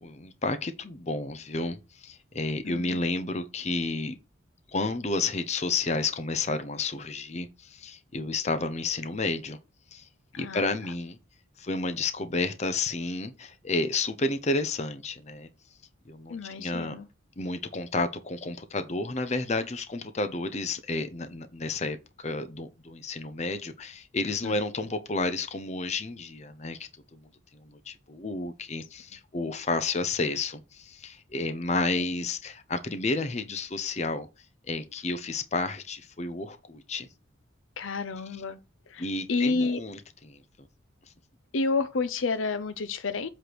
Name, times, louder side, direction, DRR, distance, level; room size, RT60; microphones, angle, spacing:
voice 1, 0.0-4.1 4.7-9.6 9.9-10.1 10.3-11.2 11.6-15.5 16.1-17.0 17.4-34.3 34.6-37.1 39.0-40.4, left 3 dB, 35° left, 0.7 m, -31 dB
voice 2, 2.6-3.0 10.3-10.6 16.3-17.1 24.4-24.5 32.0-32.1 37.8-38.6 38.9-39.8 41.5-43.3, left 3 dB, 75° left, 0.6 m, -30 dB
8.0 x 3.3 x 6.0 m
head